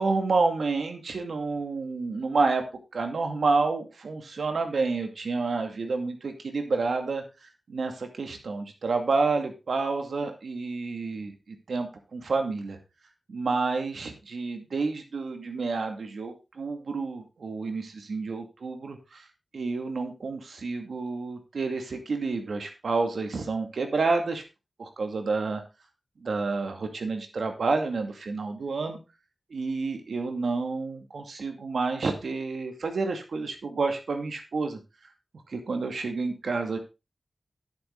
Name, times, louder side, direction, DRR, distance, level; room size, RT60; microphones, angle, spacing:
voice 1, 0.0-2.6 2.9-12.8 13.3-19.3 19.5-24.4 24.8-25.6 26.2-29.0 29.5-34.8 35.5-36.8, right 3 dB, 90° right, 5 dB, 2.2 m, -29 dB
11.0 x 9.0 x 3.8 m, 0.27 s
wide cardioid pair, 80°, 0 cm